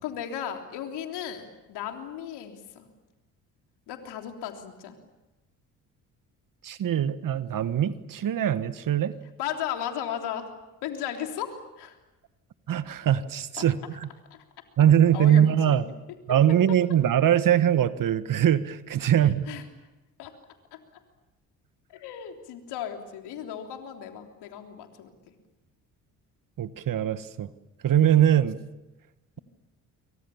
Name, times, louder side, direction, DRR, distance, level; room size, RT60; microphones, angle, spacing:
voice 1, 0.0-2.9 3.9-4.9 9.4-10.5 10.8-12.0 14.3-14.4 15.1-15.8 19.5-19.6 20.2-20.3 20.7-20.8 21.9-25.4, left 9 dB, 70° left, 4 dB, 3.5 m, -35 dB
voice 2, 6.6-9.1 12.7-14.1 14.8-15.8 16.3-19.5 26.6-27.5 27.8-28.6, right 10 dB, 50° right, 13 dB, 1.5 m, -22 dB
27.5 x 24.0 x 7.2 m, 1.1 s
hypercardioid pair, 55°, 41 cm